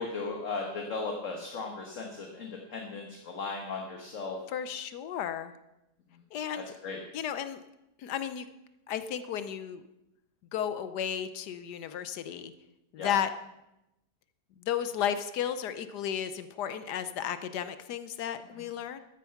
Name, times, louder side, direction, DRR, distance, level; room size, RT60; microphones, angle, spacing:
voice 1, 0.0-4.4 6.8-7.0 13.0-13.1 18.5-18.6, left 4 dB, 50° left, 1 dB, 1.7 m, -36 dB
voice 2, 4.5-5.5 6.3-6.6 7.1-7.6 8.0-8.5 8.9-9.8 10.5-12.5 12.9-13.3 14.6-19.0, left 9 dB, 80° left, 11 dB, 1.3 m, -33 dB
13.5 x 10.0 x 5.8 m, 0.91 s
omnidirectional pair, 1.8 m